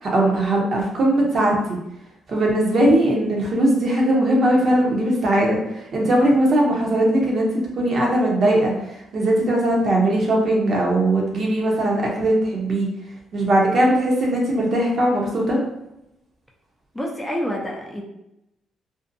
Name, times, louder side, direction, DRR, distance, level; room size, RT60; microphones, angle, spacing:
voice 1, 0.0-1.8 2.3-7.5 7.8-12.9 13.3-15.6, right 1 dB, 50° right, -1 dB, 0.7 m, -19 dB
voice 2, 16.9-18.0, equal, 10° left, -1 dB, 0.5 m, -27 dB
2.6 x 2.1 x 2.6 m, 0.86 s
cardioid pair, 90°, 0 cm